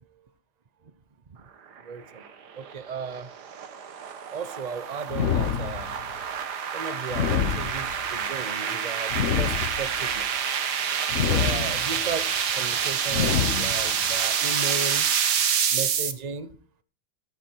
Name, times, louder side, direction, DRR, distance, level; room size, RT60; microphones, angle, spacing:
voice 1, 1.8-2.2 2.5-3.3 4.3-5.9 6.7-10.4 11.2-15.1 15.7-16.5, right 5 dB, 85° right, 13 dB, 0.3 m, -35 dB
sound 1, 2.2-16.1, right 7 dB, 60° right, 1.7 m, -27 dB
sound 2, 5.1-6.2 7.1-8.2 9.1-10.2 11.1-12.1 13.1-14.1, left 8 dB, 50° left, 0.9 m, -27 dB
13.5 x 13.5 x 4.5 m, 0.37 s
omnidirectional pair, 2.2 m